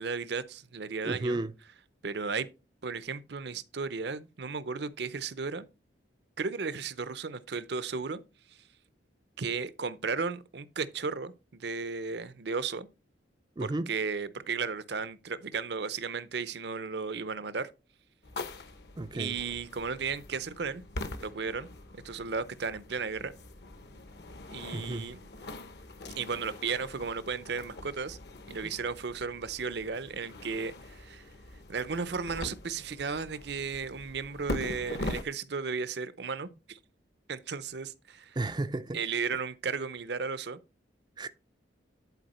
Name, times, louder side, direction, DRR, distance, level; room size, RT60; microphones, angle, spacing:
voice 1, 0.0-1.4 2.0-2.5 2.8-5.7 6.4-8.2 9.4-12.9 13.6-17.7 19.1-20.8 21.2-21.7 21.9-23.3 24.5-25.2 26.2-28.2 28.5-31.3 31.7-36.8 37.3-38.4 38.9-40.6, right 5 dB, 60° right, 0.6 m, -34 dB
voice 2, 1.0-1.5 13.6-13.9 19.0-19.4 24.7-25.1 28.6-28.7 38.4-39.0 41.2-41.3, right 2 dB, 25° right, 0.4 m, -33 dB
sound 1, 18.2-35.2, left 1 dB, 55° left, 1.0 m, -43 dB
11.0 x 4.6 x 4.2 m
head